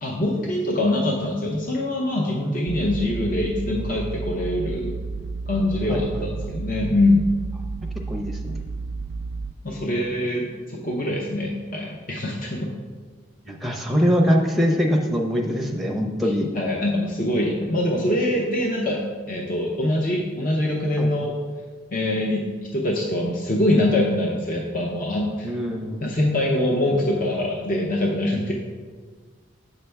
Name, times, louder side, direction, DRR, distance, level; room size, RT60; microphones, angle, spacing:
voice 1, 0.0-4.9 5.5-7.3 9.6-12.7 16.5-19.0 19.3-21.3 21.9-22.4 22.7-25.5 26.0-28.5, left 1 dB, 45° left, -1 dB, 0.6 m, -23 dB
sound 1, 2.7-9.5, right 4 dB, 65° right, 0.3 m, -32 dB
voice 2, 8.1-8.6 9.7-10.0 13.5-16.5 21.0-21.1 25.4-26.0, equal, ahead, 0 dB, 0.6 m, -23 dB
7.6 x 5.7 x 3.4 m, 1.5 s
head